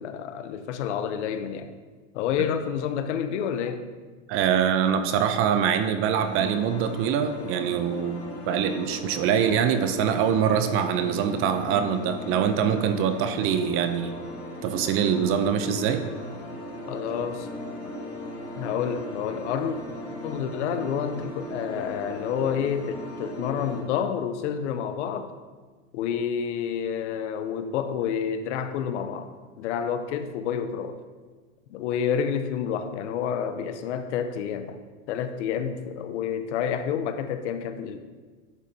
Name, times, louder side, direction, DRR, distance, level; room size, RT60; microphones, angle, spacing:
voice 1, 0.0-1.8 2.1-3.9 16.9-17.5 18.6-19.8 20.2-25.3 25.9-29.3 29.6-31.0 31.7-34.8 35.1-38.0, left 8 dB, 60° left, 9 dB, 0.8 m, -29 dB
voice 2, 4.3-14.2 14.6-16.1, right 8 dB, 35° right, 9 dB, 0.6 m, -24 dB
sound 1, 6.1-23.8, left 1 dB, 35° left, 2.6 m, -38 dB
11.0 x 7.4 x 2.8 m, 1.4 s
hypercardioid pair, 125°, 39 cm